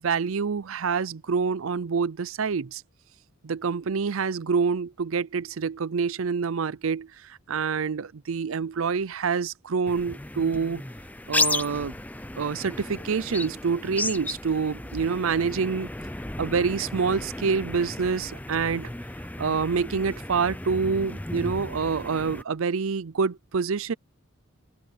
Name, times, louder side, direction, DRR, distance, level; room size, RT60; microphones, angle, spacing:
voice 1, 0.0-2.8 3.4-10.8 11.3-11.9 12.4-15.9 16.4-18.9 19.4-23.9, right 5 dB, 75° right, 0.6 m, -27 dB
sound 1, 9.9-22.4, left 2 dB, 10° left, 0.6 m, -34 dB
open air
head